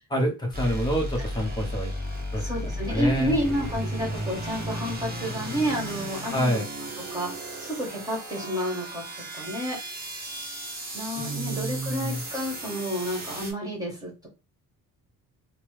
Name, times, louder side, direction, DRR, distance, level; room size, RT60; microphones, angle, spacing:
voice 1, 0.1-1.9 2.3-2.4 2.9-3.4 6.3-6.7 11.1-12.2, equal, 10° left, -1 dB, 0.8 m, -27 dB
sound 1, 0.5-13.5, equal, 25° right, 0.8 m, -35 dB
voice 2, 2.4-6.6 7.0-10.1 10.9-14.3, equal, 10° right, -2 dB, 1.3 m, -30 dB
3.0 x 2.1 x 3.1 m, 0.28 s
cardioid pair, 155°, 35 cm